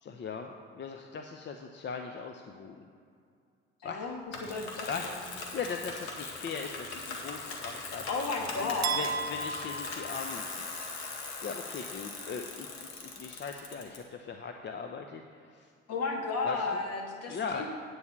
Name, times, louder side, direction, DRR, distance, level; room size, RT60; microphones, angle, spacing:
voice 1, 0.0-2.9 3.8-4.1 4.9-5.1 5.5-8.0 8.6-10.7 11.4-15.7 16.4-16.8 17.3-17.7, left 5 dB, 35° left, 4 dB, 0.7 m, -39 dB
voice 2, 3.8-5.2 8.1-9.1 15.9-17.6, left 4 dB, 55° left, 2 dB, 1.7 m, -34 dB
Bicycle, 4.3-14.0, left 3 dB, 80° left, 1.4 m, -40 dB
sound 1, 8.8-11.0, right 5 dB, 90° right, 0.7 m, -35 dB
9.5 x 4.9 x 7.2 m, 2.3 s
hypercardioid pair, 60°, 31 cm